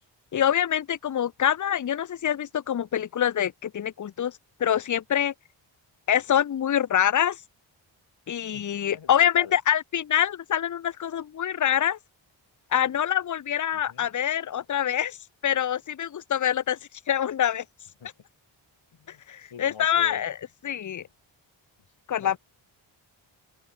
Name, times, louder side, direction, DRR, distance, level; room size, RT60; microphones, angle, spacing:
voice 1, 0.3-4.3 4.6-5.3 6.1-7.4 8.3-12.0 12.7-15.2 15.4-16.8 17.1-17.6 19.3-20.3 20.6-21.1 22.1-22.4, left 10 dB, 40° left, 0.7 m, -25 dB
voice 2, 8.5-9.6 13.7-14.1 18.0-18.1 18.9-20.3 20.6-20.7 22.2-22.4, left 7 dB, 70° left, 3.2 m, -45 dB
open air
cardioid pair, 45°, 49 cm